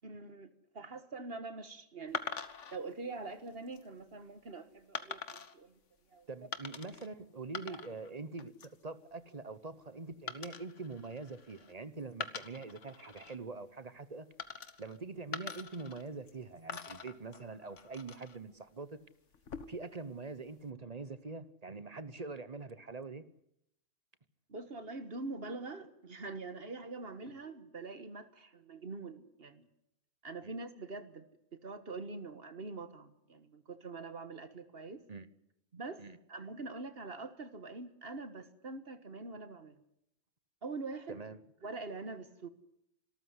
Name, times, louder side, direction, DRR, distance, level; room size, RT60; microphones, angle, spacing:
voice 1, 0.0-2.2 2.7-5.8 6.1-6.3 7.7-7.8 24.5-29.7 30.2-35.0 35.7-36.0 36.3-39.8 40.6-41.2 41.6-42.5, right 3 dB, 50° right, 11 dB, 1.7 m, -44 dB
sound 1, 2.1-2.8 3.5-3.8 4.9-5.5 6.5-7.1 7.4-8.1 8.4-8.8 10.3-11.7 12.1-13.4 14.4-15.0 15.3-16.4 16.7-18.4 19.3-19.9, left 6 dB, 75° left, 1.6 m, -44 dB
voice 2, 6.3-14.3 14.8-19.0 19.7-23.2 30.4-30.5 35.1-35.3 36.0-36.2 41.1-41.4, right 3 dB, 35° right, 14 dB, 1.0 m, -44 dB
25.5 x 13.5 x 9.6 m, 0.79 s
omnidirectional pair, 1.3 m